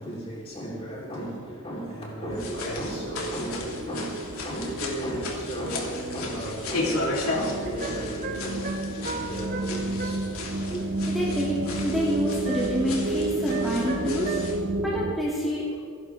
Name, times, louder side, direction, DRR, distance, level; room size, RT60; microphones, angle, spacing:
voice 1, 0.0-10.3 10.7-10.8, right 1 dB, 25° left, 3.8 m, -35 dB
sound 1, 2.2-15.2, right 2 dB, 55° right, 0.9 m, -32 dB
sound 2, 2.3-14.6, left 2 dB, 75° left, 2.7 m, -35 dB
sound 3, 7.6-10.3 12.4-12.9 13.5-14.5, right 4 dB, 40° right, 1.2 m, -36 dB
voice 2, 11.1-14.4 14.8-15.7, equal, ahead, 2.6 m, -27 dB
28.0 x 11.0 x 3.6 m
head